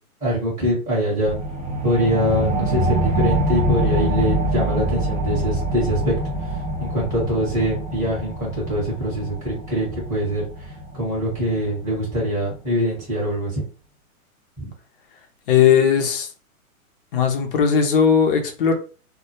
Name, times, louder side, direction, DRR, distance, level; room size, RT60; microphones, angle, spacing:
voice 1, 0.2-1.3 1.8-6.1 6.8-10.4 10.9-13.6 14.6-14.7, equal, 5° right, 0.9 m, -23 dB
sound 1, 1.3-12.3, right 1 dB, 25° right, 0.4 m, -25 dB
voice 2, 15.5-16.3 17.1-18.7, left 7 dB, 40° left, 0.5 m, -17 dB
2.1 x 2.1 x 2.9 m
hypercardioid pair, 140°, 44 cm